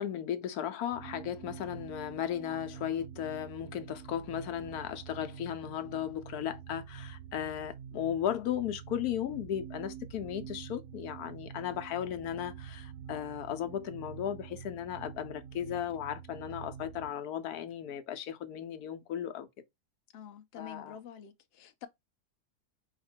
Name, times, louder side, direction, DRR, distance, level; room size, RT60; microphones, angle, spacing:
voice 1, 0.0-19.5 20.5-21.0, left 10 dB, 80° left, 1.1 m, -36 dB
sound 1, 0.9-17.1, right 8 dB, 65° right, 0.9 m, -47 dB
voice 2, 20.1-21.9, left 8 dB, 55° left, 0.7 m, -47 dB
4.9 x 2.2 x 4.3 m
omnidirectional pair, 1.7 m